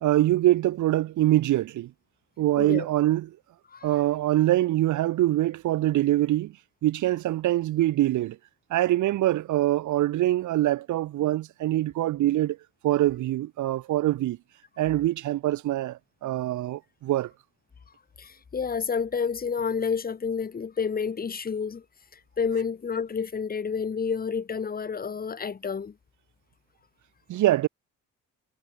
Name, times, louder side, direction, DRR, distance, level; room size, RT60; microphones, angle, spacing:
voice 1, 0.0-1.9 2.4-3.4 3.8-6.5 6.8-8.4 8.7-12.6 12.8-14.4 14.8-17.3 27.3-27.7, right 15 dB, 75° right, 1.0 m, -24 dB
voice 2, 18.2-21.8 22.4-25.9, left 6 dB, 30° left, 1.2 m, -29 dB
cardioid pair, 90°, 30 cm